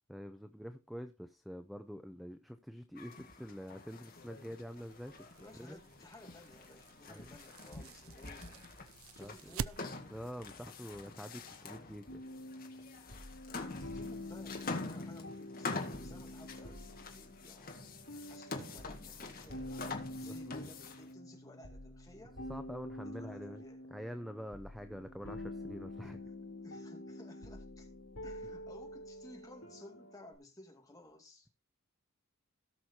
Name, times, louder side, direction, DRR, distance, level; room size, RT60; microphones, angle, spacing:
voice 1, 0.1-5.3 5.6-5.8 7.1-7.3 9.2-9.4 10.1-12.2 18.5-18.6 20.2-20.6 22.5-23.6 23.9-26.2 28.4-28.5, equal, ahead, 0.6 m, -46 dB
sound 1, 3.0-21.1, left 3 dB, 45° left, 1.8 m, -46 dB
sound 2, 4.7-10.3, right 7 dB, 70° right, 0.4 m, -47 dB
voice 2, 5.4-8.7 9.1-9.9 13.4-17.8 18.3-22.4 23.0-24.0 26.0-26.2 26.6-27.9 28.2-31.5, left 1 dB, 15° left, 2.3 m, -56 dB
sound 3, 12.1-30.3, left 1 dB, 70° left, 3.2 m, -47 dB
17.5 x 6.1 x 2.8 m
head